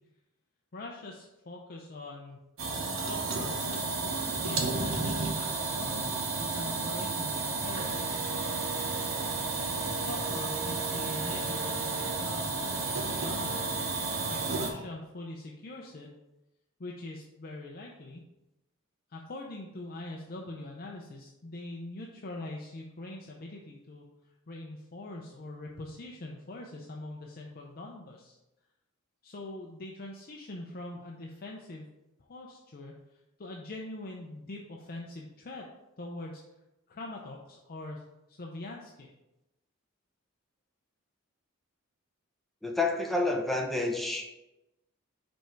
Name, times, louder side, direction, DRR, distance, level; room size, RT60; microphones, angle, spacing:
voice 1, 0.7-2.4 3.1-3.9 4.4-6.1 6.4-8.2 10.1-13.9 14.3-16.1 16.8-18.2 19.1-24.0 24.5-28.4 29.2-31.9 32.2-35.7 36.0-36.4 36.9-39.1, left 2 dB, 45° left, 0 dB, 0.6 m, -43 dB
sound 1, 2.6-14.7, right 3 dB, 65° right, 1.1 m, -32 dB
voice 2, 42.6-44.3, left 2 dB, ahead, 1 dB, 0.8 m, -29 dB
5.2 x 4.6 x 4.5 m, 0.96 s
head